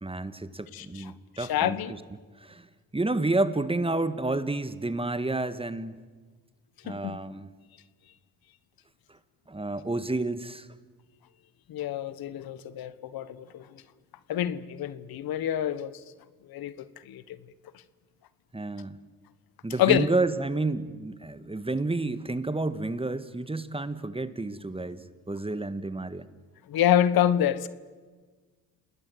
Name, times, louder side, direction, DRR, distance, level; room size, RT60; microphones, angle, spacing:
voice 1, 0.0-2.0 2.4-2.7 2.9-6.0 6.8-7.5 9.5-10.7 18.5-19.0 19.6-26.2, right 2 dB, 15° right, 1.6 m, -30 dB
voice 2, 0.7-1.9 6.9-7.2 11.7-13.7 14.3-16.0 16.5-16.7 17.0-17.4 19.8-20.1 26.7-27.7, left 11 dB, 80° left, 1.2 m, -27 dB
28.0 x 20.0 x 7.9 m
cardioid pair, 75°, 36 cm